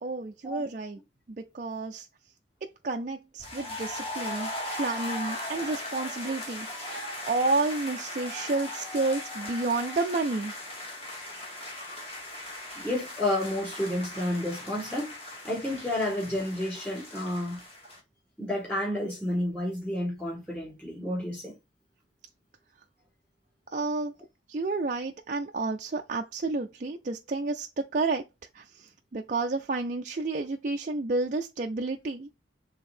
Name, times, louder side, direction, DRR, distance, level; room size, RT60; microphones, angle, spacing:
voice 1, 0.0-1.0 1.4-2.1 2.6-4.5 4.8-6.9 7.2-10.5 23.7-24.1 24.5-28.2 28.5-32.4, right 3 dB, 40° right, 0.4 m, -30 dB
sound 1, 3.4-18.0, left 1 dB, 30° left, 2.2 m, -38 dB
voice 2, 12.7-15.1 15.4-17.6 18.4-21.5, left 1 dB, 10° left, 4.0 m, -30 dB
6.6 x 3.6 x 4.3 m
head